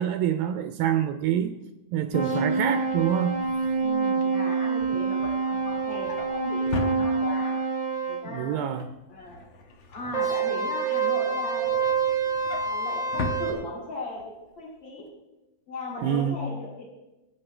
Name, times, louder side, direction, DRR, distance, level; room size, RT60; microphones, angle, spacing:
voice 1, 0.0-1.6 1.9-3.5 8.3-8.9 16.0-16.4, right 10 dB, 80° right, 8 dB, 2.3 m, -26 dB
sound 1, 2.1-8.2 10.1-13.5, right 4 dB, 15° left, 1.4 m, -26 dB
Drawer open or close, 2.6-7.7 8.0-8.4 8.6-10.8 11.3-14.2 14.6-14.8 15.1-15.2, left 3 dB, 80° left, 1.2 m, -39 dB
voice 2, 3.8-7.5 8.1-8.6 9.1-9.4 9.9-11.9 12.5-14.2 14.6-15.1 15.7-16.8, left 2 dB, 35° left, -6 dB, 2.7 m, -37 dB
22.0 x 8.7 x 3.3 m, 1.0 s
omnidirectional pair, 4.2 m